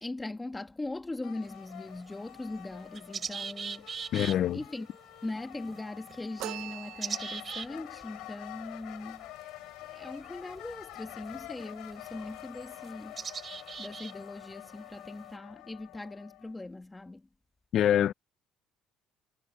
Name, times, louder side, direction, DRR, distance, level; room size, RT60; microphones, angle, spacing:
voice 1, 0.0-3.9 4.5-4.9 5.2-9.3 9.9-13.2 13.8-17.3, left 2 dB, 10° left, 1.8 m, -40 dB
sound 1, 1.2-16.7, left 19 dB, 80° left, 4.8 m, -48 dB
sound 2, 1.4-15.3, right 6 dB, 25° right, 4.1 m, -44 dB
voice 2, 4.1-4.6 17.7-18.1, left 10 dB, 45° left, 0.5 m, -25 dB
sound 3, 6.4-7.6, right 16 dB, 70° right, 0.6 m, -41 dB
cardioid pair, 160°, 0 cm